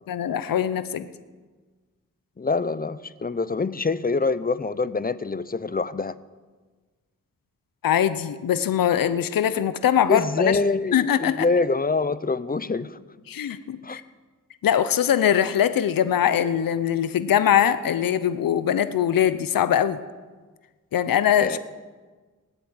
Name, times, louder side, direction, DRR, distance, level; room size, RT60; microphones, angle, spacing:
voice 1, 0.1-1.1 7.8-10.6 10.9-11.5 13.3-14.0 14.6-20.0 20.9-21.6, left 9 dB, 80° left, 13 dB, 0.8 m, -22 dB
voice 2, 2.4-6.2 10.1-13.0 13.8-14.0 21.4-21.6, left 3 dB, 25° left, 16 dB, 0.7 m, -25 dB
19.0 x 8.1 x 8.9 m, 1.4 s
cardioid pair, 55°, 33 cm